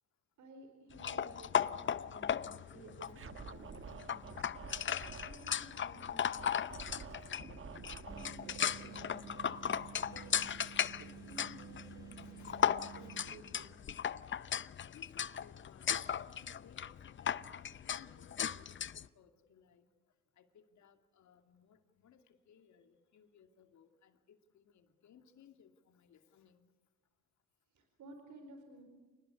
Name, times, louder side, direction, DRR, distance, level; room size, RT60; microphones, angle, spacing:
voice 1, 0.4-4.5 5.2-6.5 8.1-9.4 10.0-10.4 11.0-13.8 27.7-28.8, right 2 dB, 75° right, 5 dB, 4.5 m, -56 dB
sound 1, 1.0-19.1, left 8 dB, 40° left, 0.7 m, -37 dB
Scratching (performance technique), 3.1-5.4 6.4-10.7, right 6 dB, 45° right, 1.3 m, -51 dB
sound 2, 8.1-13.2, right 9 dB, 10° right, 6.6 m, -53 dB
voice 2, 12.2-13.2 14.9-19.8 20.4-26.7, left 7 dB, 70° left, 7 dB, 2.5 m, -64 dB
28.0 x 20.0 x 8.3 m, 1.3 s
cardioid pair, 90°, 30 cm